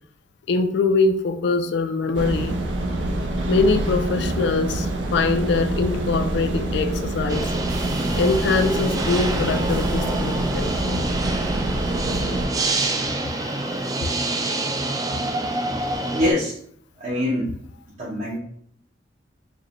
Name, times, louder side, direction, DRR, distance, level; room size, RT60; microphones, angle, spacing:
voice 1, 0.5-2.6 3.5-7.5 8.2-11.0 13.2-13.9, left 3 dB, 65° left, 0.4 m, -23 dB
sound 1, 2.1-12.5, right 1 dB, 90° right, 0.6 m, -26 dB
sound 2, 7.3-16.3, right 2 dB, 20° right, 0.4 m, -26 dB
voice 2, 16.1-16.5 17.0-17.5 18.0-18.4, left 1 dB, 40° right, 0.8 m, -23 dB
4.7 x 2.2 x 3.0 m
head